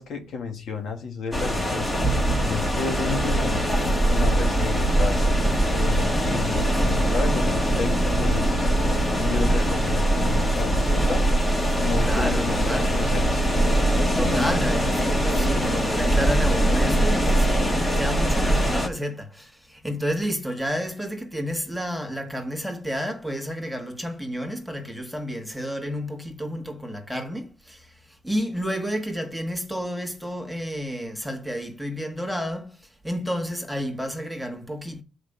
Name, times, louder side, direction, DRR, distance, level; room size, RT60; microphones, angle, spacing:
voice 1, 0.0-1.9 2.4-3.7 4.0-5.3 5.7-8.7 9.2-11.3 11.8-13.5, left 5 dB, 70° left, 1.6 m, -32 dB
sound 1, 1.3-18.9, right 1 dB, 20° left, 1.9 m, -22 dB
voice 2, 12.0-13.0 14.1-35.0, equal, ahead, 1.6 m, -30 dB
6.4 x 5.0 x 6.9 m
cardioid pair, 90°, 0 cm